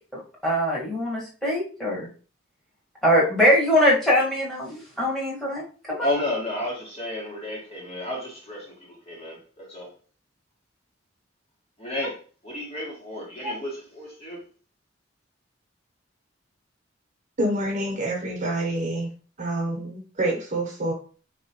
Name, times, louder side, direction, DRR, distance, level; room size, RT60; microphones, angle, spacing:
voice 1, 0.1-2.1 3.0-6.1 13.4-13.5, equal, 5° left, 1.5 m, -22 dB
voice 2, 6.0-9.9 11.8-14.4, left 1 dB, 30° left, 1.7 m, -32 dB
voice 3, 17.4-19.1 19.4-20.9, right 1 dB, 40° right, 1.1 m, -27 dB
4.4 x 3.0 x 2.9 m
head